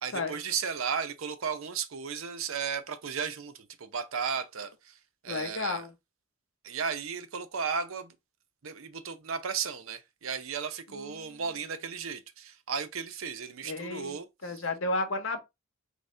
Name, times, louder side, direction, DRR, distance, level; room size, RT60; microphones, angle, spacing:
voice 1, 0.0-4.9 5.2-5.9 6.6-8.1 8.6-14.6, right 6 dB, 75° right, 0.6 m, -35 dB
voice 2, 5.3-5.9 10.9-11.4 13.6-15.4, left 3 dB, 65° left, 0.9 m, -33 dB
4.1 x 3.5 x 3.2 m
head